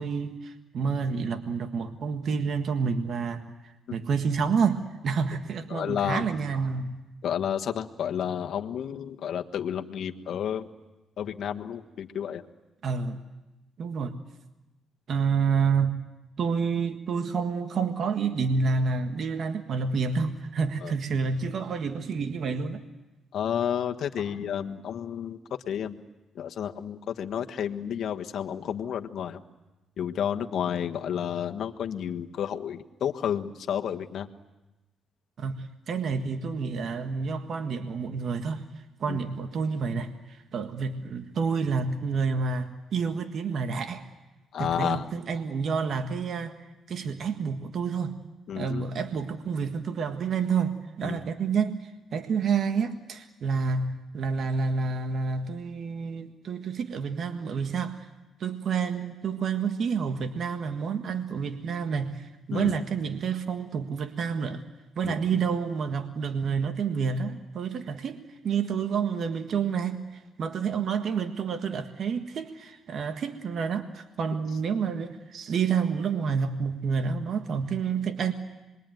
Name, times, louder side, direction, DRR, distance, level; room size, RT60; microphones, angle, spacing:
voice 1, 0.0-7.0 12.8-13.2 13.8-14.2 15.1-16.0 16.4-22.8 35.4-38.7 39.0-44.1 44.6-46.6 46.9-48.1 48.6-58.1 58.4-64.6 65.0-78.3, right 5 dB, 60° right, 7 dB, 1.6 m, -29 dB
voice 2, 5.7-6.3 7.2-10.7 11.2-12.5 20.8-20.9 23.3-25.4 25.7-26.0 26.3-29.4 30.0-34.3 39.1-39.2 44.5-45.1 48.5-48.8 51.0-51.2 62.5-62.7 65.0-65.2, left 9 dB, 65° left, 5 dB, 1.4 m, -31 dB
26.5 x 22.5 x 9.2 m, 1.0 s
cardioid pair, 90°, 0 cm